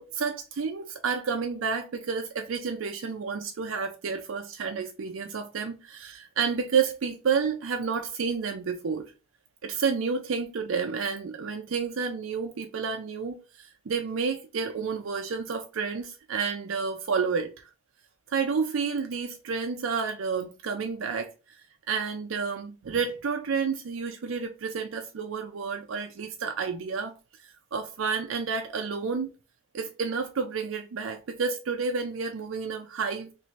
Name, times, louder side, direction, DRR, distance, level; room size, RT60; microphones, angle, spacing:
voice 1, 0.0-9.1 9.6-17.5 18.3-21.3 21.9-27.1 27.7-29.3 29.7-33.3, right 5 dB, 85° right, 0.5 m, -30 dB
3.1 x 2.6 x 4.0 m
head